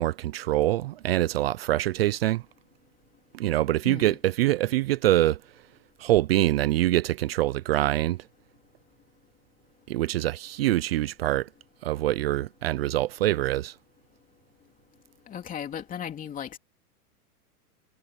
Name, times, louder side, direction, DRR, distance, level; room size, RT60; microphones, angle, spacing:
voice 1, 0.0-2.4 3.3-5.4 6.0-8.2 9.9-11.5 11.8-13.7, right 15 dB, 40° right, 0.5 m, -24 dB
voice 2, 3.8-4.2 15.3-16.6, left 9 dB, 15° left, 3.2 m, -36 dB
hypercardioid pair, 150°, 46 cm